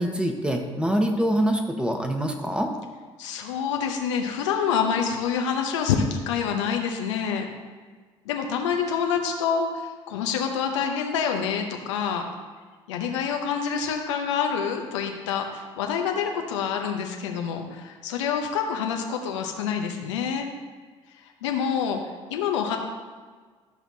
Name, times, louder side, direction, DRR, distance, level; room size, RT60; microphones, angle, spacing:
voice 1, 0.0-2.7, equal, 5° right, 3 dB, 1.1 m, -25 dB
voice 2, 3.2-7.5 8.3-9.7 10.1-12.2 12.9-20.4 21.4-22.0 22.3-22.8, left 7 dB, 80° left, 3 dB, 0.8 m, -27 dB
12.5 x 5.8 x 2.7 m, 1.5 s
hypercardioid pair, 55°, 15 cm